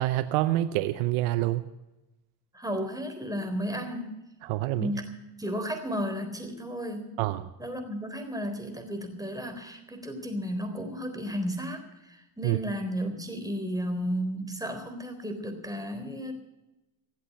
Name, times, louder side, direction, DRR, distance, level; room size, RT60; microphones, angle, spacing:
voice 1, 0.0-1.6 4.4-4.9 7.2-7.4 12.4-12.6, right 16 dB, 85° right, 12 dB, 0.8 m, -26 dB
voice 2, 2.5-4.3 4.7-5.1 5.4-7.2 7.6-16.3, equal, 5° right, 4 dB, 3.9 m, -33 dB
16.5 x 8.1 x 9.6 m, 1.0 s
supercardioid pair, 70°, 48 cm